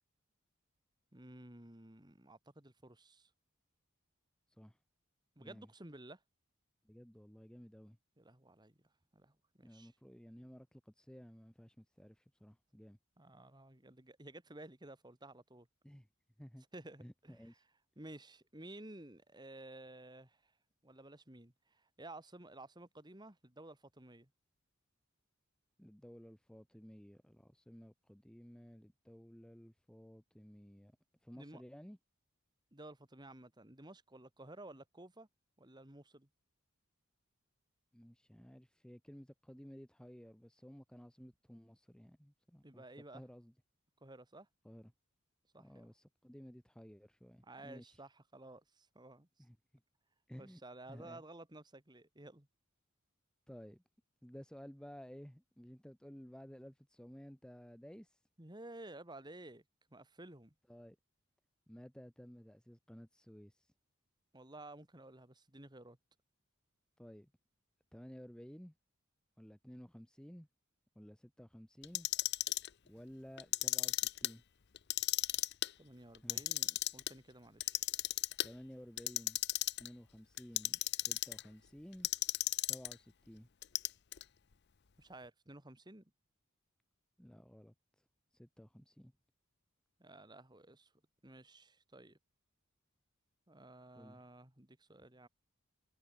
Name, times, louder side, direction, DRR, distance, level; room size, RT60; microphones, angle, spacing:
voice 1, 1.1-3.3 5.4-6.2 8.2-8.8 9.1-9.9 13.2-15.7 16.7-17.6 18.0-20.5 20.8-24.3 31.4-31.6 32.7-35.3 35.6-36.3 42.6-43.2 44.0-44.5 45.5-45.9 47.4-49.3 50.4-52.5 58.4-59.6 59.9-60.5 64.3-66.0 75.8-77.9 85.0-86.1 90.0-90.9 91.2-92.2 93.5-95.3, right 2 dB, 20° right, 2.2 m, -54 dB
voice 2, 5.4-5.7 6.8-8.0 9.6-13.0 15.8-16.1 16.4-16.6 17.0-17.6 25.8-31.0 31.2-32.0 37.9-42.8 43.1-43.5 44.6-44.9 45.6-48.0 49.4-49.6 50.3-50.6 50.9-51.2 53.5-53.8 54.2-58.2 60.7-61.0 61.7-63.7 67.0-67.3 67.9-68.7 69.4-70.5 70.9-72.1 72.8-74.4 76.2-76.4 78.4-79.4 79.8-82.1 82.6-83.5 87.2-87.7 88.3-89.1 94.0-94.2, equal, 5° left, 1.2 m, -54 dB
Clock, 71.8-72.7 73.4-74.3 74.8-75.7 76.1-77.1 77.6-78.5 79.0-79.9 80.4-81.4 82.0-82.9 83.6-84.2, left 16 dB, 50° left, 0.7 m, -34 dB
head